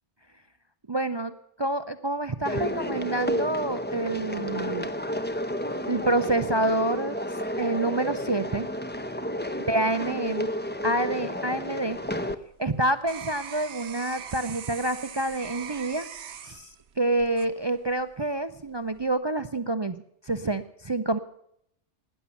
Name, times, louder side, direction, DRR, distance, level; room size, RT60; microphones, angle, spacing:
voice 1, 0.9-1.3 1.6-4.9 5.9-7.2 7.6-8.7 9.7-10.5 10.8-12.0 12.6-16.1 16.4-16.7 17.0-21.2, right 2 dB, 35° right, 11 dB, 0.4 m, -27 dB
sound 1, 2.4-12.3, equal, 10° left, 0.6 m, -31 dB
sound 2, 11.9-18.1 18.7-19.1, right 8 dB, 70° right, 1.1 m, -42 dB
18.0 x 10.0 x 6.9 m, 0.73 s
omnidirectional pair, 1.2 m